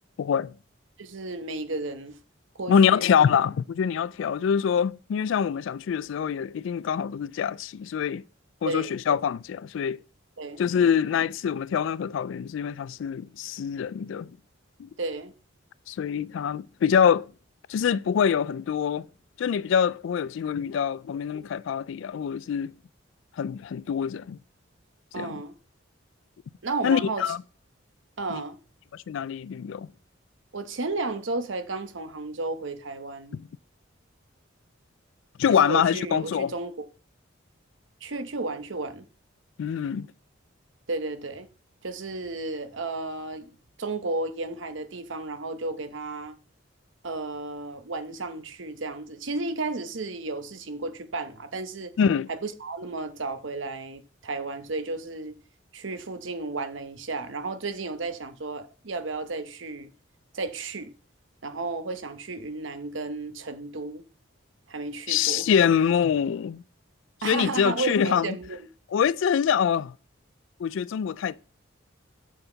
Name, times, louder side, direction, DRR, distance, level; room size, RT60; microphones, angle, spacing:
voice 1, 0.2-0.5 2.7-8.2 8.6-10.0 10.6-14.3 14.8-14.9 15.9-17.3 17.7-19.1 19.4-22.7 23.4-24.4 25.2-25.4 26.8-27.4 28.3-28.4 28.9-29.9 33.3-33.5 35.4-36.5 39.6-40.1 52.0-52.3 65.1-66.6 67.2-68.4 68.9-69.9 70.6-71.4, left 7 dB, 70° left, 0.3 m, -25 dB
voice 2, 1.0-2.2 2.6-3.1 8.6-9.0 10.4-10.6 15.0-15.3 25.1-25.5 26.6-27.2 28.2-28.6 30.5-33.4 35.5-36.8 38.0-39.1 40.9-41.5 41.8-43.5 43.8-46.3 47.0-51.9 52.3-55.4 55.7-59.9 60.3-60.9 61.4-64.0 64.7-65.5 67.2-68.6, right 3 dB, 70° right, 0.9 m, -33 dB
7.4 x 5.7 x 4.0 m
head